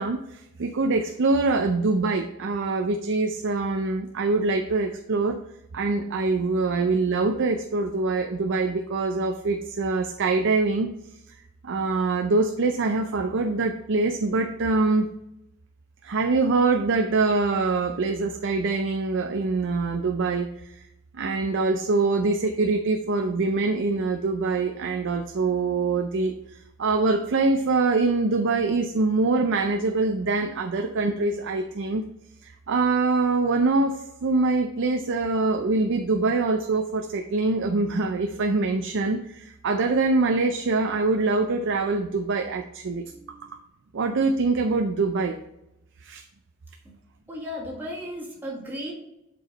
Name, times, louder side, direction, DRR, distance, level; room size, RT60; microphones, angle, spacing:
voice 1, 0.0-5.4 5.7-10.9 11.6-15.1 16.0-20.8 21.1-26.3 26.8-32.1 32.4-43.0 43.9-45.4 46.0-46.2, right 3 dB, 55° right, 5 dB, 0.5 m, -24 dB
voice 2, 43.1-43.5 46.9-47.0 47.3-48.9, equal, 10° right, -6 dB, 1.9 m, -35 dB
7.8 x 4.7 x 4.0 m, 0.86 s
head